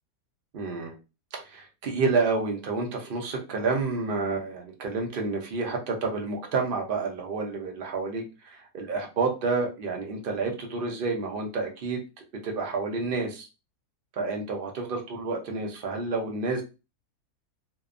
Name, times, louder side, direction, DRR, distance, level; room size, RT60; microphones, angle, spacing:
voice 1, 0.5-0.9 1.3-12.0 12.4-13.5 14.2-16.6, right 4 dB, 65° right, 2 dB, 0.5 m, -29 dB
2.7 x 2.1 x 2.4 m, 0.29 s
omnidirectional pair, 1.6 m